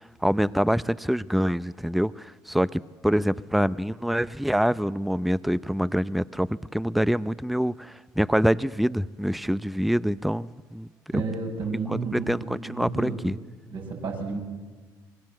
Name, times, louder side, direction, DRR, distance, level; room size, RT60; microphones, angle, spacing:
voice 1, 0.2-10.9 11.1-11.2 11.9-13.4, equal, ahead, 16 dB, 0.7 m, -25 dB
voice 2, 11.1-13.2 13.7-14.4, right 4 dB, 60° right, 1 dB, 7.5 m, -31 dB
27.0 x 21.5 x 7.7 m, 1.3 s
supercardioid pair, 65°, 9 cm